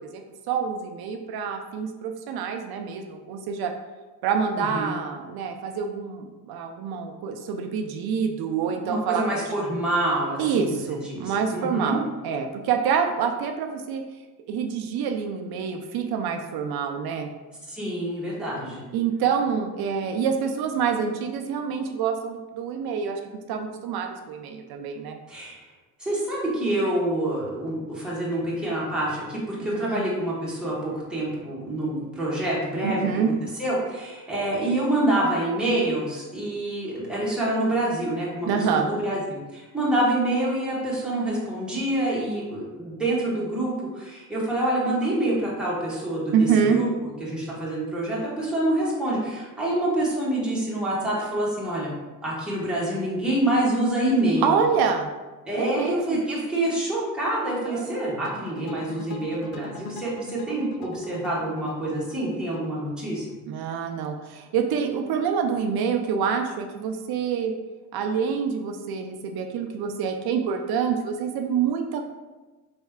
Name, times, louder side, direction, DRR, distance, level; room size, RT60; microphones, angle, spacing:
voice 1, 0.5-3.7 4.2-9.6 10.4-14.0 14.5-17.3 18.9-23.2 23.5-25.2 29.6-30.0 32.8-33.3 38.5-38.9 46.3-46.8 54.4-55.1 55.6-56.2 57.7-57.9 63.5-67.5 67.9-72.1, right 6 dB, 80° right, 4 dB, 0.5 m, -26 dB
voice 2, 4.6-4.9 8.8-10.7 11.0-12.0 17.7-18.8 25.3-25.6 26.0-33.0 33.6-46.9 47.2-51.9 52.2-54.6 55.4-63.2, right 1 dB, ahead, -7 dB, 1.4 m, -26 dB
sound 1, 58.2-63.3, left 4 dB, 80° left, 0.6 m, -42 dB
4.3 x 3.1 x 3.6 m, 1.2 s
cardioid pair, 135°, 36 cm